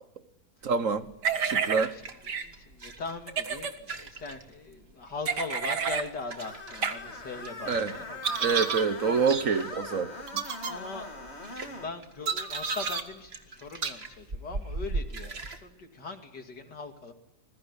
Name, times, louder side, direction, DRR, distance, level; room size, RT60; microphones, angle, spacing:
voice 1, 0.6-1.1 1.4-1.9 7.7-7.9 8.4-10.4, right 5 dB, 55° right, 1.5 m, -27 dB
sound 1, 1.0-15.6, right 3 dB, 40° right, 2.1 m, -42 dB
sound 2, 1.2-1.9 2.3-2.4 3.3-3.7 5.3-6.1 6.8-6.9 8.2-8.9 9.3-9.4 10.3-10.7 12.3-13.0 13.8-13.9, right 6 dB, 85° right, 2.3 m, -30 dB
voice 2, 2.3-8.5 9.0-9.2 10.7-17.1, left 3 dB, 85° left, 3.2 m, -40 dB
Screech, 6.4-12.0, left 2 dB, 40° left, 2.9 m, -42 dB
26.5 x 21.0 x 9.9 m
omnidirectional pair, 1.8 m